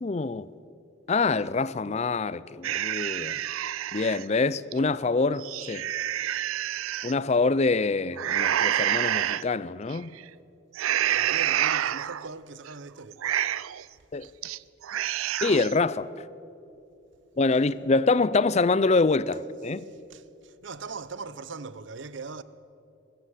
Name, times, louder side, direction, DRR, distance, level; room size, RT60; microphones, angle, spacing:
voice 1, 0.0-0.5 1.1-3.4 3.9-5.9 7.0-10.1 14.1-14.3 15.4-16.1 17.4-19.9, left 3 dB, 30° left, 0.4 m, -25 dB
sound 1, 2.6-4.2 4.7-4.8 5.3-7.1 8.2-9.4 9.9-10.2 10.7-12.3 12.7-12.8 13.1-13.8 14.2-14.6 14.8-15.8, right 11 dB, 85° right, 0.5 m, -28 dB
voice 2, 10.9-13.3 14.2-14.3 19.8-22.4, right 4 dB, 65° right, 0.8 m, -41 dB
23.0 x 14.0 x 8.2 m
head